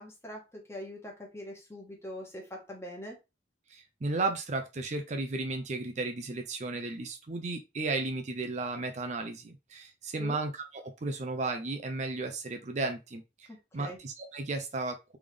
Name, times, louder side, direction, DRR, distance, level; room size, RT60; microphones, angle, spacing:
voice 1, 0.0-3.2 10.2-10.4 13.5-14.0, equal, 15° left, 0 dB, 1.3 m, -43 dB
voice 2, 3.7-13.2 13.7-15.2, right 3 dB, 40° right, 5 dB, 0.5 m, -34 dB
3.6 x 3.4 x 3.3 m, 0.25 s
head